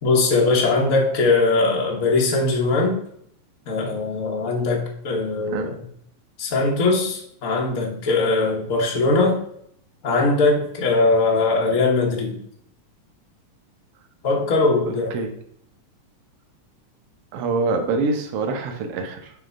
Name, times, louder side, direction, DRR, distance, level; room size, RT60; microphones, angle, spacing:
voice 1, 0.0-3.0 3.7-5.8 6.4-9.4 10.0-12.4 14.2-15.2, left 3 dB, 85° left, -1 dB, 0.7 m, -20 dB
voice 2, 14.9-15.3 17.3-19.3, right 3 dB, 65° right, 5 dB, 1.5 m, -25 dB
9.2 x 3.4 x 5.3 m, 0.68 s
omnidirectional pair, 3.8 m